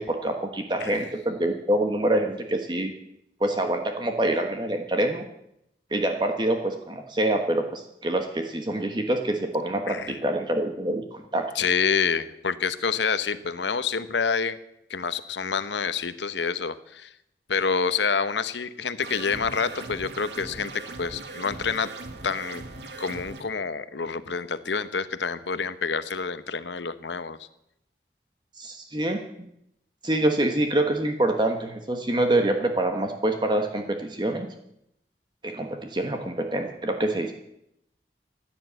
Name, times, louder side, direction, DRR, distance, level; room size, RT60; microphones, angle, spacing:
voice 1, 0.0-2.9 3.4-5.2 5.9-11.5 28.6-29.2 30.0-34.5 35.4-37.3, right 1 dB, 25° right, 5 dB, 1.2 m, -26 dB
voice 2, 9.9-10.2 11.5-14.6 14.9-17.1 17.5-21.9 22.2-22.6 23.0-27.4, left 5 dB, 90° left, 13 dB, 1.0 m, -27 dB
sound 1, 19.0-23.4, right 3 dB, 80° right, 1.9 m, -40 dB
15.5 x 10.0 x 8.1 m, 0.79 s
head